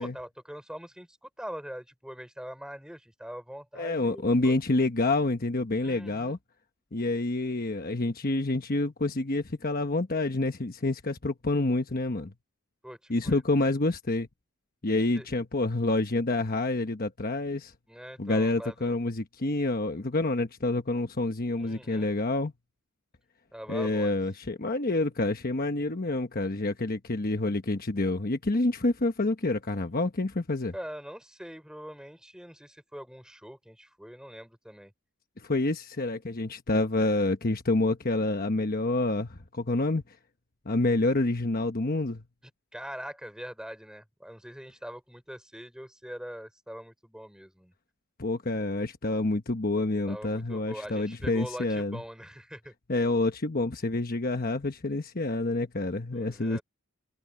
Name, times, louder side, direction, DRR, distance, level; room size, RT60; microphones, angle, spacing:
voice 1, 0.0-4.6 5.8-6.4 12.8-13.4 15.1-15.3 17.9-18.9 21.6-22.1 23.5-24.1 30.7-34.9 42.7-47.7 50.1-52.7 56.1-56.6, equal, 5° right, 5.4 m, -43 dB
voice 2, 3.7-6.4 6.9-12.3 13.1-14.3 14.8-17.7 18.2-22.5 23.7-30.7 35.4-40.0 40.7-42.2 48.2-52.0 52.9-56.6, left 2 dB, 45° left, 1.1 m, -28 dB
head